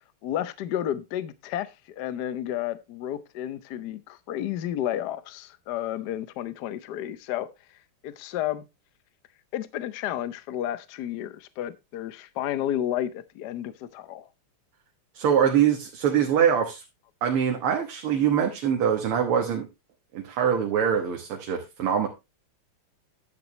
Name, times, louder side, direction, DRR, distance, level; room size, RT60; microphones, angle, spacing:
voice 1, 0.2-7.5 8.0-8.7 9.5-14.3, left 11 dB, 65° left, 1.1 m, -31 dB
voice 2, 15.1-16.8 17.2-19.7 20.1-22.1, right 8 dB, 90° right, 2.2 m, -23 dB
10.5 x 8.6 x 3.0 m
omnidirectional pair, 2.4 m